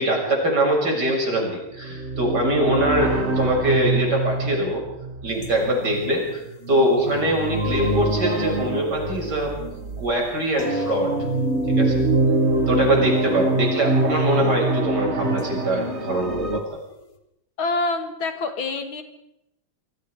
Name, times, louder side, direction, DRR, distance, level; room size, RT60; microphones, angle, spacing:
voice 1, 0.0-4.8 5.2-6.4 6.7-9.5 10.0-11.2 11.7-12.0 12.7-16.8, right 1 dB, 50° right, 0 dB, 7.6 m, -23 dB
sound 1, 1.8-10.3 10.9-16.6, right 2 dB, 30° right, 2.1 m, -24 dB
sound 2, 5.4-7.0 7.6-8.7 9.0-9.1 9.6-9.7 10.4-17.1, right 1 dB, 40° left, 2.8 m, -34 dB
voice 2, 17.6-19.0, left 3 dB, 70° left, 7 dB, 2.8 m, -26 dB
27.0 x 24.5 x 4.9 m, 0.85 s
omnidirectional pair, 2.3 m